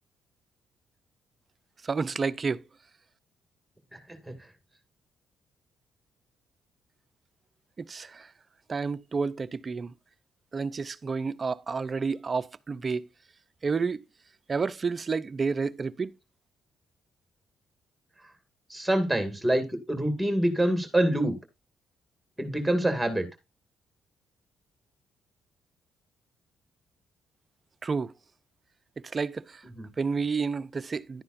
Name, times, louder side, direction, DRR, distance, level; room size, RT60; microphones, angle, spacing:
voice 1, 1.8-2.6 7.8-8.3 8.7-9.9 10.5-13.1 13.6-14.0 14.5-16.1 27.8-28.1 29.0-29.6 30.0-31.2, right 5 dB, 35° right, 0.6 m, -30 dB
voice 2, 18.7-21.4 22.4-23.2 29.8-29.9, right 1 dB, ahead, 2.2 m, -26 dB
11.0 x 9.7 x 2.6 m
cardioid pair, 90°, 0 cm